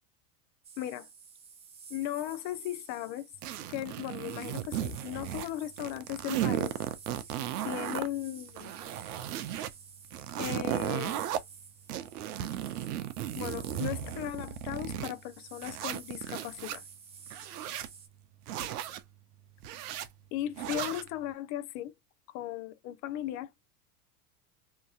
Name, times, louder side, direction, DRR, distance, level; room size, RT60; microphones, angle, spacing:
sound 1, 0.6-18.1, right 6 dB, 15° right, 0.4 m, -52 dB
voice 1, 0.8-1.1 1.9-3.3 3.7-6.7 7.6-8.7 10.4-11.2 13.3-16.8 20.3-21.9 22.3-23.5, left 13 dB, 40° left, 0.5 m, -37 dB
sound 2, 3.4-5.5 5.8-8.1 8.5-9.7 10.1-11.4 11.9-15.1 15.6-16.8 17.3-17.9 18.5-19.0 19.6-20.1 20.6-21.1, right 11 dB, 75° right, 0.6 m, -35 dB
2.8 x 2.6 x 2.3 m
hypercardioid pair, 100°, 46 cm